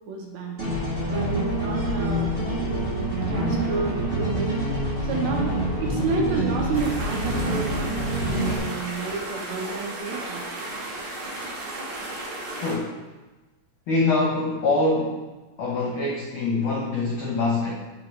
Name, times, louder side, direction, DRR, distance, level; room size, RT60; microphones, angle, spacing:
voice 1, 0.1-0.6 1.1-2.3 2.6-4.5 5.0-10.4, right 4 dB, 75° right, 0 dB, 2.1 m, -31 dB
sound 1, 0.6-8.6, right 1 dB, 25° right, 1.4 m, -26 dB
sound 2, 6.7-12.7, right 2 dB, 50° right, 1.8 m, -34 dB
voice 2, 13.9-15.2 15.6-17.7, left 3 dB, 90° left, -4 dB, 1.1 m, -24 dB
8.8 x 4.1 x 3.1 m, 1.2 s
omnidirectional pair, 3.5 m